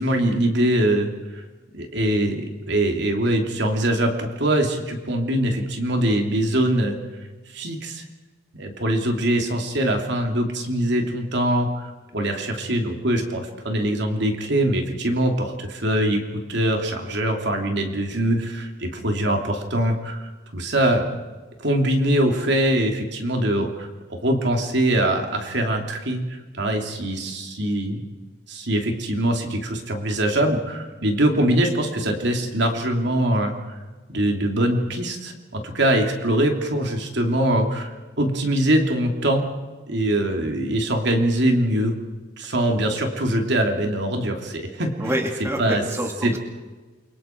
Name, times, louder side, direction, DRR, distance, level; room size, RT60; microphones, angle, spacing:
voice 1, 0.0-1.4 1.7-7.0 7.5-8.0 8.6-16.2 16.5-21.2 21.6-23.9 24.2-28.0 28.5-33.8 34.1-39.4 39.9-41.9 42.4-44.9 45.6-45.8 46.2-46.4, right 1 dB, 60° right, 3 dB, 3.0 m, -23 dB
voice 2, 45.0-46.4, equal, 15° right, 2 dB, 2.5 m, -27 dB
29.0 x 24.0 x 4.6 m, 1.3 s
head